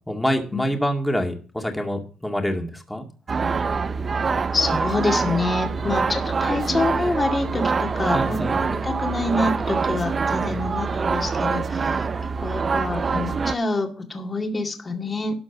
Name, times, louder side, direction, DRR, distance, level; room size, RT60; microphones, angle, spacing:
voice 1, 0.1-3.1 5.8-5.9 8.1-8.6 10.5-10.7, equal, 5° left, 3 dB, 2.2 m, -26 dB
sound 1, 3.3-13.5, right 5 dB, 40° right, 0.6 m, -25 dB
voice 2, 4.5-12.1 12.4-15.3, left 3 dB, 30° left, 3 dB, 2.1 m, -27 dB
12.5 x 5.7 x 6.0 m, 0.38 s
cardioid pair, 90°, 0 cm